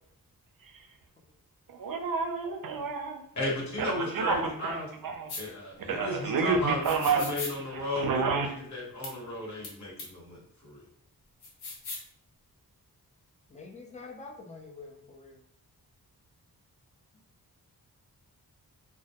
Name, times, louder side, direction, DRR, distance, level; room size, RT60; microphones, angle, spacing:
voice 1, 1.8-3.2 3.8-5.3 5.9-7.4 7.7-8.5, right 4 dB, 60° right, 4 dB, 0.5 m, -29 dB
voice 2, 3.3-4.9 5.3-10.8, left 1 dB, 45° left, -4 dB, 1.1 m, -35 dB
sound 1, 5.3-5.4 6.8-7.5 9.0-9.1 9.6-9.7 10.0-10.1 11.4-12.1, left 3 dB, 90° left, 0.7 m, -38 dB
voice 3, 13.5-15.4, left 3 dB, 20° left, 2 dB, 0.4 m, -46 dB
2.1 x 2.1 x 2.7 m, 0.70 s
wide cardioid pair, 95°, 38 cm